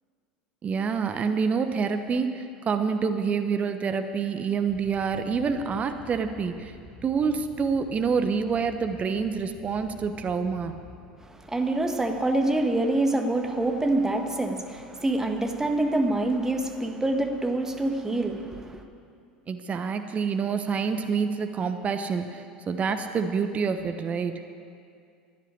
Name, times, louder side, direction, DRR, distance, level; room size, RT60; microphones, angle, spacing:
voice 1, 0.6-6.7 7.0-10.7 19.5-24.4, right 5 dB, 30° right, 8 dB, 1.0 m, -27 dB
sound 1, 4.7-12.0, left 1 dB, 15° left, 4.2 m, -49 dB
voice 2, 11.2-18.8, right 2 dB, 10° right, 4 dB, 1.6 m, -26 dB
15.0 x 10.5 x 8.5 m, 2.3 s
figure-of-eight pair, 75°, 5 cm